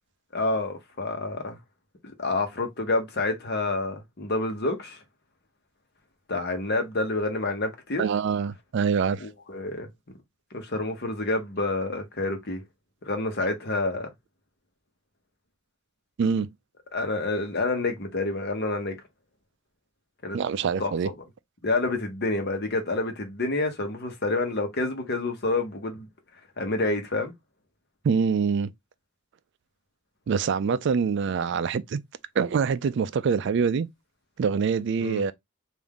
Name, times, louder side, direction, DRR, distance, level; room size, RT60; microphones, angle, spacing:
voice 1, 0.3-1.6 2.2-5.0 6.3-8.0 9.2-9.9 10.5-12.6 13.0-14.1 16.9-19.0 20.2-20.4 20.8-21.1 21.6-26.1 26.6-27.3 35.0-35.2, left 2 dB, 55° left, 1.0 m, -28 dB
voice 2, 8.0-9.3 16.2-16.5 20.3-21.1 28.0-28.7 30.3-32.0 32.4-33.9 34.4-35.3, right 6 dB, 60° right, 0.3 m, -25 dB
3.5 x 2.6 x 3.5 m
head